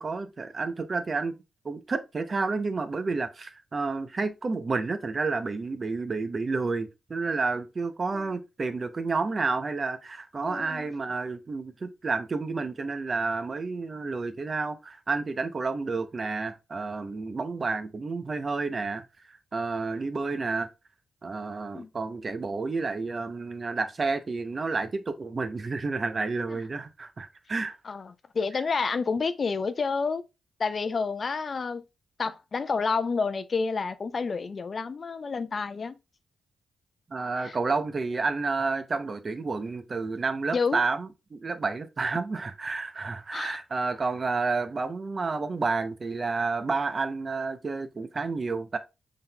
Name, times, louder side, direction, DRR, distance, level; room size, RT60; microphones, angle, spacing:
voice 1, 0.0-1.4 1.6-20.7 21.2-27.8 37.1-48.8, right 4 dB, 45° right, 0.6 m, -30 dB
voice 2, 10.4-10.9 21.7-21.9 26.5-26.6 27.8-30.2 30.6-31.8 32.2-36.0 37.4-37.6 40.5-40.8 43.3-43.6, left 4 dB, 50° left, 0.4 m, -29 dB
5.5 x 3.6 x 2.2 m
supercardioid pair, 50°, 0 cm